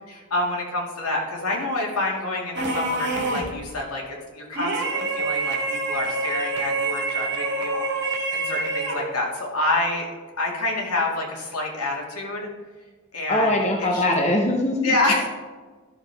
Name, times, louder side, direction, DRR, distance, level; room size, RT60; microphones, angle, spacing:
voice 1, 0.0-4.0 4.3-10.1 10.4-12.5 13.1-13.5 13.9-14.1 14.8-15.3, left 2 dB, 80° left, -1 dB, 2.1 m, -27 dB
sound 1, 2.5-3.6 4.5-9.2, right 3 dB, 50° right, 1.6 m, -26 dB
voice 2, 13.3-15.0, left 1 dB, 30° left, 1 dB, 0.8 m, -22 dB
12.5 x 6.4 x 3.4 m, 1.4 s
head